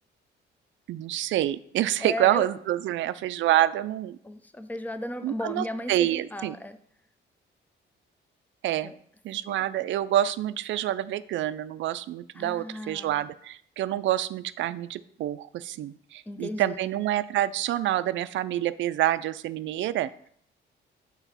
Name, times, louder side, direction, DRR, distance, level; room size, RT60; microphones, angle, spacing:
voice 1, 0.9-4.2 5.2-6.6 8.6-8.9 9.2-20.1, right 13 dB, 70° right, 15 dB, 0.4 m, -27 dB
voice 2, 2.0-2.5 4.2-6.8 8.8-8.9 9.5-9.7 12.4-13.3 16.3-16.8, left 1 dB, 10° left, 10 dB, 0.6 m, -35 dB
7.1 x 3.7 x 5.6 m, 0.65 s
cardioid pair, 90°, 20 cm